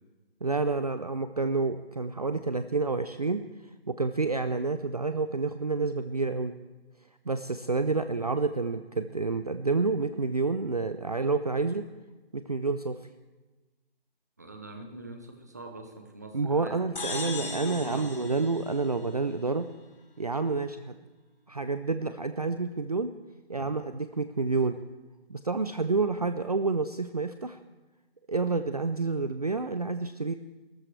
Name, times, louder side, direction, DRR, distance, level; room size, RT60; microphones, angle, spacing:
voice 1, 0.4-3.4 3.9-6.6 7.3-11.9 12.3-13.0 16.3-19.7 20.2-21.0 21.5-23.1 23.5-24.8 25.3-27.6 28.3-30.3, right 3 dB, 40° right, 10 dB, 0.5 m, -29 dB
voice 2, 14.4-16.8 17.1-18.1 23.6-23.7, right 1 dB, 15° right, 5 dB, 0.8 m, -42 dB
sound 1, 17.0-19.5, left 3 dB, 60° left, 3.1 m, -38 dB
29.5 x 14.0 x 3.3 m, 1.2 s
hypercardioid pair, 180°, 31 cm